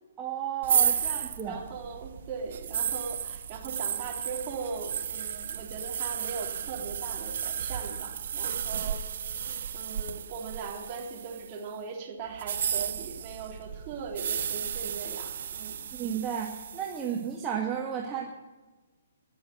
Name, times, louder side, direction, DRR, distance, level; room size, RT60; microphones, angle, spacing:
voice 1, 0.2-1.6 15.9-18.3, right 8 dB, 20° right, -3 dB, 1.9 m, -33 dB
sound 1, 0.6-11.6 12.3-17.2, right 8 dB, 55° right, 0.8 m, -33 dB
voice 2, 0.9-15.8, right 5 dB, 35° right, -1 dB, 3.5 m, -40 dB
20.5 x 7.1 x 8.0 m, 1.2 s
figure-of-eight pair, 125°, 0 cm